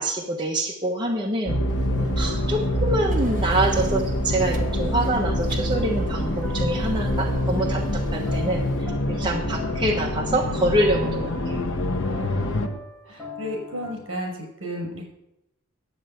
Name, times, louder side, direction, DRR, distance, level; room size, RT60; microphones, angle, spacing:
voice 1, 0.0-1.6 2.2-11.6, right 1 dB, 20° right, -1 dB, 1.1 m, -26 dB
sound 1, 1.5-12.7, left 1 dB, 60° left, 1.2 m, -25 dB
sound 2, 1.7-8.9, right 2 dB, 40° right, 1.4 m, -43 dB
sound 3, 1.9-4.1 4.5-14.3, left 1 dB, ahead, 2.7 m, -40 dB
voice 2, 13.0-15.0, equal, 60° right, 0 dB, 5.7 m, -34 dB
11.0 x 8.5 x 7.9 m, 0.87 s
head